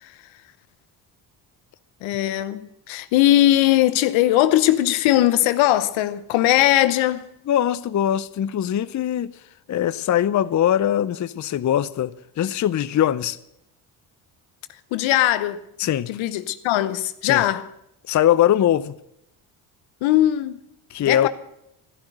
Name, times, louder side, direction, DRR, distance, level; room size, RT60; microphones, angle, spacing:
voice 1, 2.0-7.3 14.9-15.6 16.1-17.6 20.0-20.6 21.1-21.3, left 14 dB, 75° left, 1.0 m, -19 dB
voice 2, 7.5-13.4 15.8-16.1 17.2-17.4 18.1-19.0 20.9-21.3, left 11 dB, 40° left, 0.6 m, -21 dB
12.5 x 11.5 x 7.9 m
supercardioid pair, 60°, 47 cm